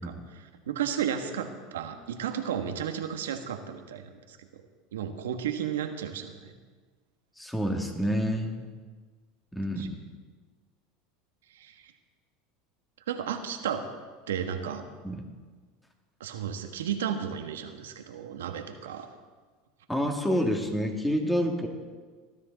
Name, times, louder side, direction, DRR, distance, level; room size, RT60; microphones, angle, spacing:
voice 1, 0.0-4.6 4.9-6.5 9.8-9.9 11.5-11.7 13.1-13.9 14.3-14.8 16.2-19.1, right 8 dB, 90° right, 6 dB, 1.5 m, -33 dB
voice 2, 7.4-8.6 9.5-10.0 15.0-15.2 19.9-21.7, equal, 5° left, 2 dB, 2.5 m, -28 dB
19.5 x 13.5 x 4.1 m, 1.5 s
hypercardioid pair, 100°, 0 cm